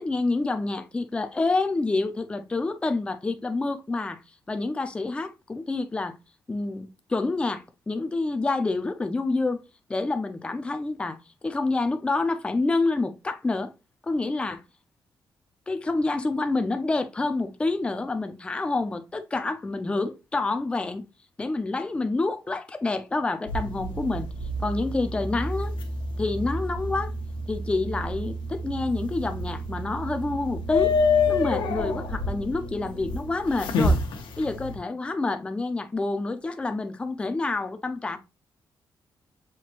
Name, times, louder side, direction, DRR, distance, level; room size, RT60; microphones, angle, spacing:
voice 1, 0.0-4.2 4.5-6.1 6.5-9.6 9.9-11.2 11.4-13.7 14.0-14.6 15.7-21.0 21.4-24.3 24.6-25.7 26.2-27.1 27.5-30.9 31.3-34.0 34.4-38.2, left 3 dB, 15° left, 0.4 m, -28 dB
sound 1, 23.5-34.8, left 2 dB, 85° left, 0.9 m, -28 dB
5.8 x 2.7 x 2.9 m
wide cardioid pair, 170°, 8 cm